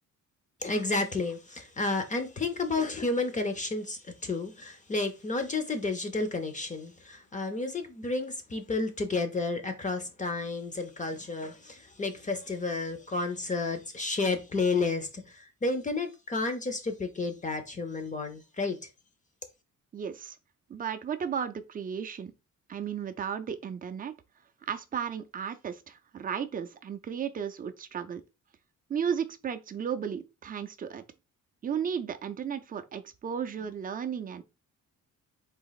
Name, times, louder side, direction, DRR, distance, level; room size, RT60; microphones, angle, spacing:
voice 1, 0.6-18.8, left 3 dB, 25° left, 0.5 m, -31 dB
voice 2, 19.9-20.4 20.7-22.3 22.7-24.1 24.7-28.2 28.9-31.0 31.6-34.4, right 7 dB, 25° right, 0.4 m, -34 dB
4.0 x 2.9 x 3.9 m
wide cardioid pair, 180°, 32 cm